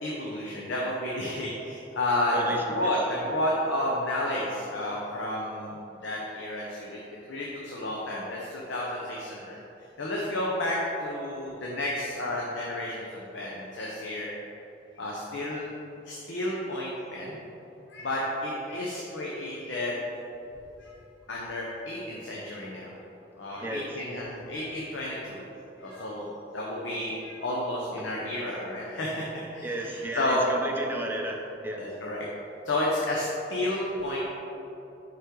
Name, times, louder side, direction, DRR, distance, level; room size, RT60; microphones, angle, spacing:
voice 1, 0.0-7.0 7.3-9.6 10.0-14.3 15.0-15.7 16.1-17.4 17.9-19.9 20.8-20.9 21.3-22.9 23.4-25.4 25.8-29.3 29.5-30.4 31.8-32.3 32.6-34.2, left 1 dB, 90° left, -4 dB, 0.8 m, -31 dB
voice 2, 2.3-2.9 23.6-23.9 29.6-31.9, right 1 dB, 10° right, 0 dB, 0.5 m, -34 dB
5.6 x 5.0 x 3.8 m, 3.0 s
head